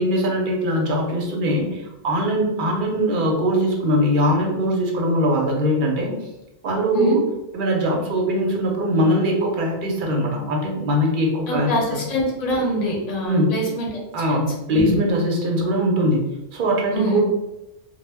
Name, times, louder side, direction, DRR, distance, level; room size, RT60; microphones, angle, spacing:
voice 1, 0.0-6.1 6.6-7.2 7.5-11.7 12.0-12.1 13.2-13.5 14.1-16.2 16.5-17.2, equal, 55° right, 0 dB, 0.6 m, -21 dB
voice 2, 11.5-13.9 14.3-14.4 14.7-15.0 16.9-17.2, equal, 45° left, -2 dB, 0.7 m, -24 dB
2.0 x 2.0 x 3.3 m, 0.96 s
omnidirectional pair, 1.2 m